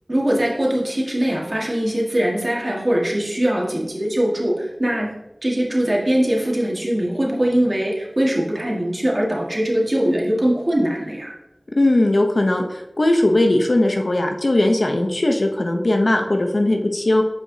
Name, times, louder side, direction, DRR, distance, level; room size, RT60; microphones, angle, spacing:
voice 1, 0.1-5.1 5.4-11.3, right 1 dB, 45° right, -3 dB, 1.7 m, -21 dB
voice 2, 11.8-17.2, left 1 dB, 65° left, 3 dB, 0.8 m, -18 dB
8.6 x 4.8 x 2.8 m, 0.91 s
wide cardioid pair, 50°, 0 cm